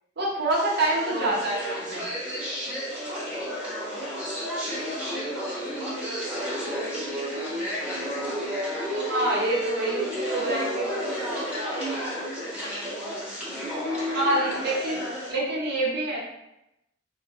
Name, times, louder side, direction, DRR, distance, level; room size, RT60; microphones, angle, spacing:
voice 1, 0.2-2.1 9.0-10.9 14.1-15.0 15.3-16.2, right 2 dB, 55° right, -3 dB, 0.8 m, -26 dB
sound 1, 0.5-15.3, equal, 5° right, 1.0 m, -31 dB
voice 2, 1.1-1.5 3.6-8.3 9.7-13.5 14.2-15.3, right 2 dB, 75° left, -10 dB, 1.0 m, -41 dB
2.4 x 2.2 x 3.4 m, 0.89 s
head